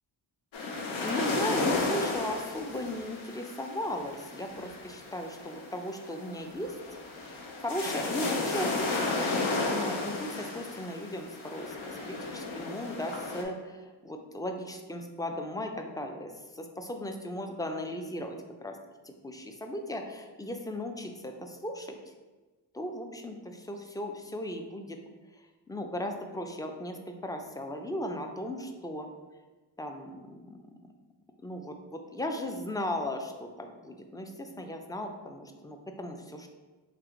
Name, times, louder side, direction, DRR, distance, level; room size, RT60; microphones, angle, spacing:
sound 1, 0.5-13.4, left 3 dB, 80° left, 0.8 m, -33 dB
voice 1, 1.0-6.8 7.2-8.8 9.3-18.8 19.0-22.0 22.8-25.0 25.7-29.1 29.8-30.6 31.4-36.5, left 1 dB, 10° left, 4 dB, 0.3 m, -37 dB
3.4 x 2.7 x 3.7 m, 1.3 s
cardioid pair, 50°, 47 cm